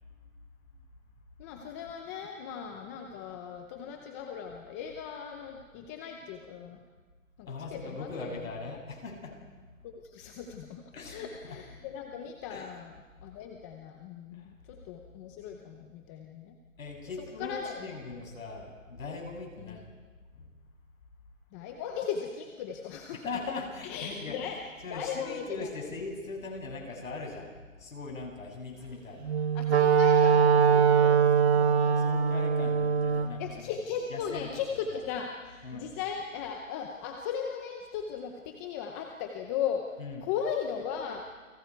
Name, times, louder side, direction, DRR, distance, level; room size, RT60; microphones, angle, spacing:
voice 1, 1.4-6.8 7.4-8.3 9.8-10.8 11.1-12.9 13.2-16.6 17.2-18.0 19.6-19.8 21.5-23.2 23.8-24.6 24.9-25.7 29.5-31.2 31.5-32.3 33.4-41.2, left 7 dB, 10° left, 3 dB, 0.7 m, -37 dB
voice 2, 7.5-9.3 10.9-11.6 12.5-12.7 14.4-14.5 16.8-19.9 20.4-20.5 23.2-24.4 24.8-27.5 27.8-29.4 32.0-33.7 34.1-34.5 34.9-35.0 35.6-35.9 40.0-40.2, left 3 dB, 75° left, 1 dB, 7.3 m, -40 dB
Wind instrument woodwind instrument, 29.2-33.4, right 7 dB, 50° right, 1.5 m, -22 dB
29.0 x 23.0 x 4.6 m, 1.4 s
hypercardioid pair, 155°, 40 cm